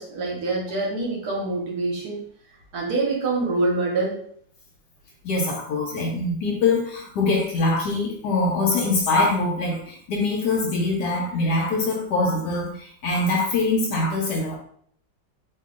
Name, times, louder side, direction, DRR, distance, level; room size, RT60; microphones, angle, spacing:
voice 1, 0.0-2.2 2.7-4.2, right 3 dB, 60° right, -3 dB, 1.1 m, -25 dB
voice 2, 5.2-14.6, left 3 dB, 70° left, 0 dB, 1.1 m, -23 dB
2.9 x 2.6 x 3.6 m, 0.63 s
omnidirectional pair, 2.1 m